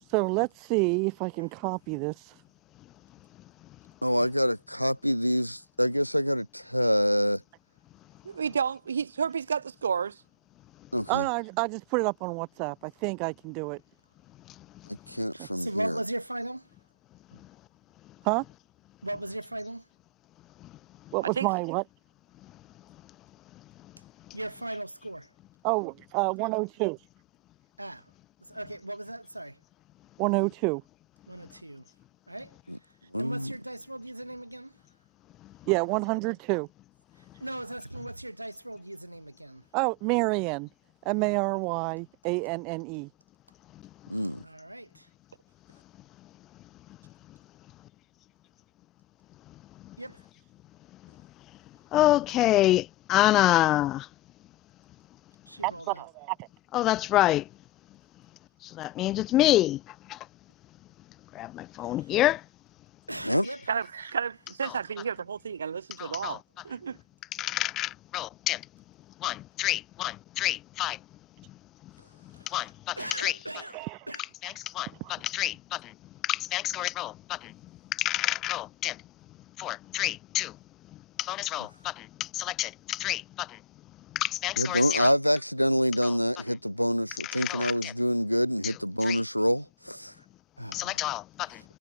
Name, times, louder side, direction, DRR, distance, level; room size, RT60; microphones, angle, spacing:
voice 1, 0.1-2.3 11.1-13.8 15.4-15.5 18.2-18.4 21.1-21.8 25.6-27.0 30.2-30.8 35.7-36.7 39.7-40.7 41.1-43.1 55.6-56.5 73.5-74.0 75.0-75.1, right 30 dB, 45° right, 0.6 m, -28 dB
voice 2, 4.0-7.4 10.9-11.3 14.9-16.0 32.7-32.8 33.1-33.5 44.1-44.4 63.2-63.5 84.6-90.1 90.6-90.9, equal, 90° left, 1.9 m, -26 dB
voice 3, 8.2-10.2 21.2-21.5 63.7-66.4 66.6-67.0, right 6 dB, 70° right, 2.9 m, -31 dB
voice 4, 15.3-16.7 17.3-17.4 19.0-19.9 24.3-25.3 27.8-28.1 28.4-29.6 31.3-31.9 32.3-32.6 33.2-34.8 37.2-39.6 44.4-45.1 50.0-50.3 55.5-56.0 63.1-63.8 72.4-72.7 73.0-74.3, right 1 dB, 85° right, 2.8 m, -38 dB
voice 5, 49.5-50.0 51.0-51.2 51.9-54.1 56.7-57.5 58.6-60.3 61.3-62.4 63.1-63.3 64.6-65.0 66.0-66.6 67.3-68.6 69.2-71.0 71.8-71.9 72.2-73.4 74.2-75.9 76.2-79.0 79.6-80.6 81.2-83.6 84.1-85.1 86.0-86.2 87.2-87.9 88.6-88.7 89.0-89.2 90.7-91.6, left 15 dB, 35° left, 1.0 m, -28 dB
figure-of-eight pair, 90°, 0 cm